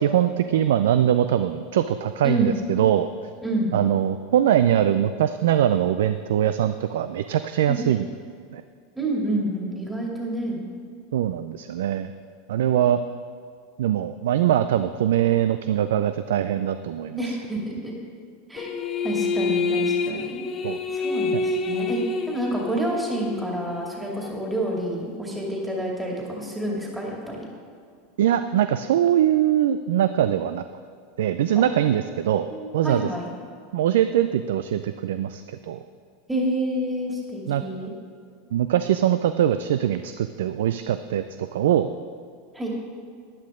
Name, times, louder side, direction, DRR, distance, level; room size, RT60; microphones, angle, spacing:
voice 1, 0.0-3.1 3.7-8.1 8.5-8.6 11.1-12.1 12.5-13.0 13.8-17.2 20.6-20.8 28.2-30.6 31.2-32.5 32.7-33.1 33.7-35.8 37.5-37.6 38.5-41.9, right 10 dB, 75° right, 11 dB, 0.3 m, -22 dB
voice 2, 3.4-3.7 7.7-7.8 9.0-10.7 17.2-17.9 18.5-18.7 19.0-27.5 31.5-31.6 32.5-33.3 36.3-37.9 42.5-42.7, right 1 dB, 10° right, -2 dB, 2.5 m, -28 dB
sound 1, 18.6-24.4, left 3 dB, 35° left, 0.8 m, -27 dB
11.5 x 11.0 x 3.7 m, 2.3 s
hypercardioid pair, 95°, 0 cm